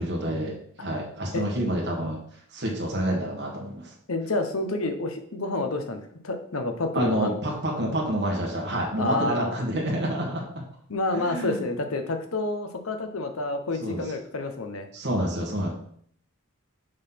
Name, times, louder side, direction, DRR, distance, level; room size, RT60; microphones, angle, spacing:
voice 1, 0.0-2.2 2.5-3.9 6.9-10.4 11.1-11.6 13.8-14.0 14.9-15.7, right 1 dB, 55° right, -2 dB, 1.7 m, -28 dB
voice 2, 4.1-7.3 9.0-9.5 10.9-14.9, left 2 dB, 80° left, 7 dB, 0.9 m, -29 dB
6.5 x 3.9 x 5.9 m, 0.64 s
head